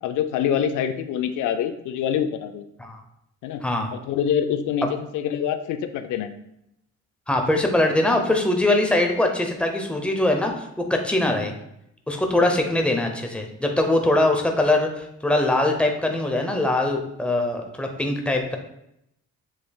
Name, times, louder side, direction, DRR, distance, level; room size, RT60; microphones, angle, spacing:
voice 1, 0.0-2.7 3.4-3.6 3.9-6.3 11.4-11.5, left 8 dB, 80° left, 9 dB, 0.5 m, -25 dB
voice 2, 7.3-11.5 12.1-18.6, left 1 dB, 5° left, 2 dB, 0.8 m, -22 dB
7.3 x 3.2 x 2.3 m, 0.80 s
cardioid pair, 90°, 30 cm